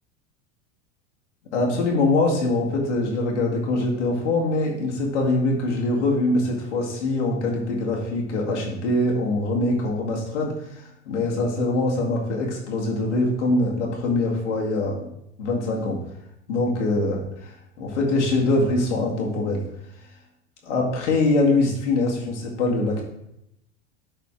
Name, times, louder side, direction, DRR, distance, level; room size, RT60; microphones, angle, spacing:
voice 1, 1.5-15.0 15.4-16.0 16.5-19.6 20.6-23.0, left 2 dB, 70° left, -1 dB, 2.0 m, -23 dB
10.5 x 4.2 x 3.8 m, 0.81 s
figure-of-eight pair, 80°, 37 cm